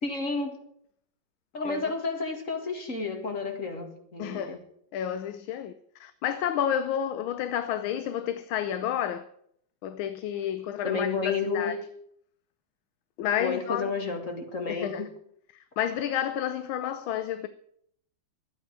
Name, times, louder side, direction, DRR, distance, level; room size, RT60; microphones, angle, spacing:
voice 1, 0.0-0.6 1.5-4.6 10.8-11.8 13.4-15.1, left 4 dB, 40° left, 2.4 m, -31 dB
voice 2, 4.2-4.6 4.9-9.2 9.8-11.8 13.2-13.9 14.7-15.0 15.5-17.5, left 10 dB, 85° left, 1.5 m, -30 dB
11.5 x 9.2 x 8.8 m
omnidirectional pair, 2.2 m